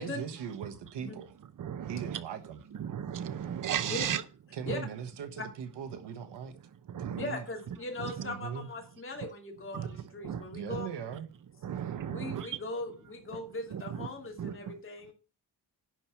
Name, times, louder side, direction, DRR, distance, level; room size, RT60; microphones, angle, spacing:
voice 1, 0.0-1.3 1.9-2.6 4.5-6.6 7.0-7.5 8.2-8.7 10.3-11.3, right 7 dB, 90° right, 1.4 m, -40 dB
voice 2, 1.6-2.2 2.8-4.2 4.7-4.8 6.9-7.2 8.0-8.1 9.7-10.4 10.7-10.8 11.6-12.6 13.7-14.1 14.4-14.5, right 9 dB, 50° right, 0.9 m, -35 dB
voice 3, 7.2-10.9 12.1-15.1, left 2 dB, 30° left, 2.6 m, -39 dB
11.0 x 4.6 x 7.2 m
wide cardioid pair, 150°, 40 cm